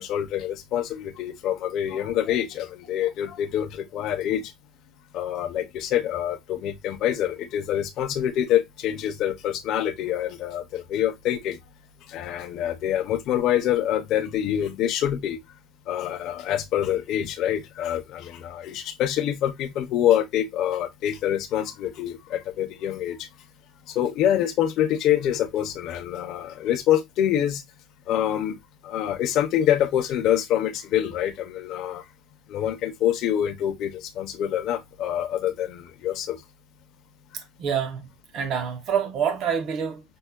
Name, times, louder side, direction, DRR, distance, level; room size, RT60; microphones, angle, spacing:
voice 1, 0.0-4.5 5.1-11.6 12.1-15.4 15.9-23.3 23.9-27.6 28.1-28.6 28.8-32.0 32.5-36.4, left 11 dB, 50° left, 0.6 m, -26 dB
voice 2, 37.6-38.1 38.3-40.0, right 7 dB, 45° right, 0.7 m, -26 dB
5.3 x 2.1 x 2.2 m
cardioid pair, 170°, 0 cm